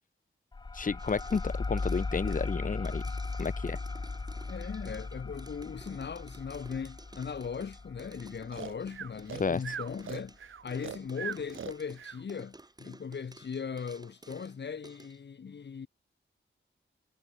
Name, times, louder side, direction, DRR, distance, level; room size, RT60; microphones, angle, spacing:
sound 1, 0.5-9.7, left 3 dB, 20° left, 0.7 m, -37 dB
voice 1, 0.7-3.0 3.4-3.8 9.4-9.6, left 5 dB, 40° left, 1.4 m, -31 dB
sound 2, 1.0-15.2, right 2 dB, 20° right, 7.1 m, -54 dB
voice 2, 4.5-10.4 10.6-15.9, left 6 dB, 60° left, 2.1 m, -39 dB
Breathing, 8.5-12.2, right 7 dB, 90° right, 1.7 m, -40 dB
wide cardioid pair, 140°, 20 cm